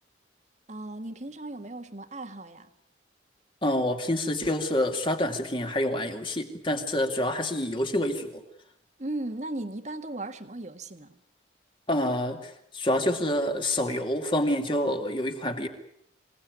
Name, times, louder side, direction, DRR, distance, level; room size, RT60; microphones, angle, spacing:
voice 1, 0.7-2.7 9.0-11.2, right 2 dB, 40° right, 1.7 m, -36 dB
voice 2, 3.6-8.4 11.9-15.7, left 1 dB, 25° left, 2.5 m, -27 dB
26.5 x 18.0 x 9.5 m
head